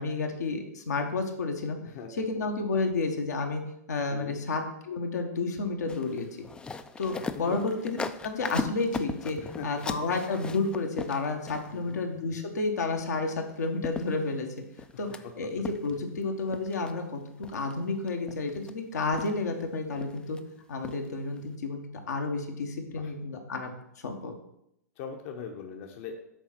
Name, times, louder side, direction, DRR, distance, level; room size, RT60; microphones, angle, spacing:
voice 1, 0.0-1.8 2.2-3.6 3.9-6.3 7.0-8.0 8.2-14.5 15.0-17.2 17.5-20.4 20.7-23.7 24.0-24.3, left 3 dB, 75° left, 3 dB, 1.3 m, -31 dB
voice 2, 1.8-2.2 4.1-4.4 7.2-7.6 9.4-9.9 11.7-12.0 14.9-15.3 22.9-23.1 25.0-26.2, left 6 dB, 50° left, 3 dB, 1.0 m, -41 dB
sound 1, 5.9-11.9 13.4-13.5 13.8-15.2 15.6-16.2 16.5-16.9 17.4-17.7 18.1-18.7 19.1-19.6 19.9-20.4 20.8-21.1 21.4-21.5, left 4 dB, 10° left, 0.4 m, -38 dB
6.9 x 4.1 x 5.9 m, 0.79 s
hypercardioid pair, 110°, 9 cm